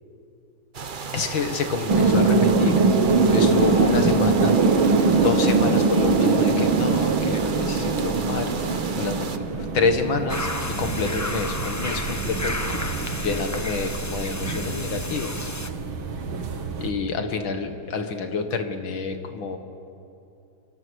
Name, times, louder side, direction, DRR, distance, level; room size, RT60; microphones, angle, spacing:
sound 1, 0.7-9.4, right 5 dB, 50° right, 0.6 m, -34 dB
voice 1, 1.1-2.8 3.2-4.6 5.2-10.5 10.8-12.6 13.1-15.5 16.8-19.6, left 4 dB, 70° left, 7 dB, 2.4 m, -28 dB
sound 2, 1.9-16.9, right 4 dB, 80° right, 2.4 m, -23 dB
sound 3, 10.3-15.7, left 2 dB, 15° left, 0.5 m, -32 dB
28.5 x 25.0 x 6.4 m, 2.7 s
omnidirectional pair, 2.2 m